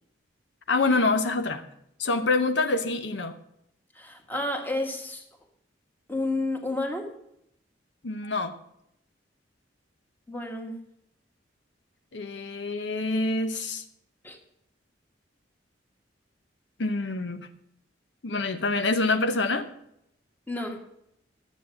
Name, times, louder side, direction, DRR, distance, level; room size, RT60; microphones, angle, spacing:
voice 1, 0.7-1.7 2.0-3.4 8.0-8.5 12.1-13.8 16.8-17.5 18.2-19.7, left 3 dB, 70° left, 8 dB, 0.8 m, -26 dB
voice 2, 3.9-5.2 6.1-7.1 10.3-10.8 14.2-14.4 20.5-20.8, left 2 dB, 10° left, 3 dB, 1.7 m, -31 dB
12.0 x 8.1 x 7.0 m, 0.76 s
head